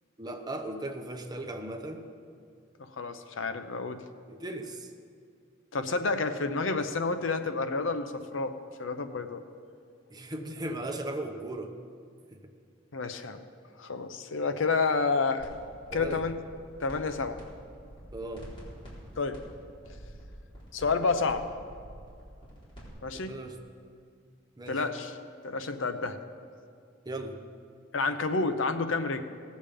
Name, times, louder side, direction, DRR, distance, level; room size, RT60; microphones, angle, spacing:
voice 1, 0.2-2.1 4.3-4.9 10.1-11.7 12.3-12.4 15.9-16.2 18.1-18.5 23.3-23.6 24.6-24.8 27.0-27.4, right 1 dB, 20° right, 4 dB, 0.8 m, -37 dB
voice 2, 2.8-4.0 5.7-9.4 12.9-13.4 13.8-15.5 15.9-16.4 16.8-17.4 19.2-19.4 20.7-21.4 23.0-23.3 24.7-25.1 25.4-26.2 27.9-29.2, left 4 dB, 75° left, 9 dB, 0.7 m, -29 dB
sound 1, 15.4-15.5 15.8-17.4 17.7-22.9, equal, 30° left, 3.9 m, -47 dB
18.0 x 7.3 x 5.1 m, 2.3 s
head